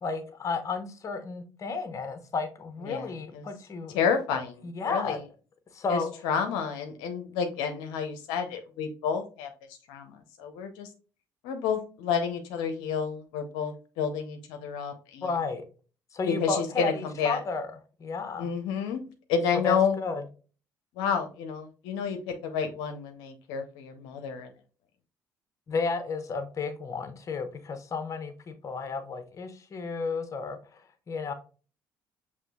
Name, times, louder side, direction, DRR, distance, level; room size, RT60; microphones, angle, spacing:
voice 1, 0.0-4.0 4.6-5.2 5.7-6.1 15.2-15.6 16.1-17.7 18.0-18.5 19.6-20.2 25.7-30.6 31.1-31.3, left 4 dB, 40° left, 8 dB, 0.9 m, -32 dB
voice 2, 2.8-3.5 3.9-5.2 5.9-10.9 11.4-15.3 16.3-17.4 18.4-19.0 19.3-20.0 21.0-24.5, left 6 dB, 85° left, 5 dB, 0.6 m, -30 dB
5.9 x 3.0 x 2.3 m, 0.37 s
supercardioid pair, 75°, 8 cm